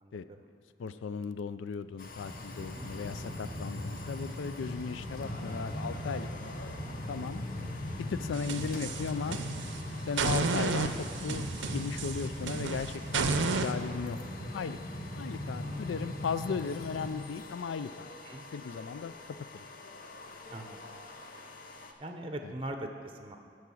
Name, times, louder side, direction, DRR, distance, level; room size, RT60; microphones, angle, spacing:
voice 1, 0.0-0.5 2.6-2.9 18.2-18.4 20.5-21.0 22.0-23.4, right 1 dB, 30° right, 5 dB, 0.6 m, -41 dB
voice 2, 0.8-6.8 7.1-7.4 8.1-9.4 10.1-14.2 14.5-14.8 15.2-18.1 18.5-19.1 19.5-19.6 22.4-22.5, left 5 dB, 85° left, 13 dB, 0.4 m, -36 dB
Train, 1.9-17.1, left 1 dB, 25° left, 1.2 m, -40 dB
sound 1, 2.0-21.9, left 3 dB, 45° left, 0.7 m, -48 dB
sound 2, 8.3-9.8 10.2-13.7, right 4 dB, 85° right, 0.6 m, -32 dB
12.5 x 4.8 x 6.3 m, 2.3 s
head